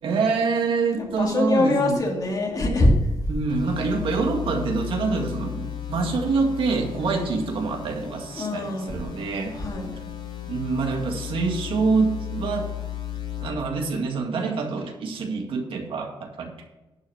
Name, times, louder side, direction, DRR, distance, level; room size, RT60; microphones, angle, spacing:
voice 1, 0.0-2.1 3.3-9.6 10.5-12.7 13.4-16.5, right 4 dB, 85° right, 2 dB, 2.0 m, -26 dB
voice 2, 0.9-3.1 7.1-7.3 8.4-8.9 9.5-9.9, left 2 dB, 45° left, -1 dB, 2.8 m, -23 dB
sound 1, 3.5-13.5, left 11 dB, 85° left, 3.4 m, -35 dB
11.0 x 5.9 x 7.1 m, 1.1 s
wide cardioid pair, 135°, 9 cm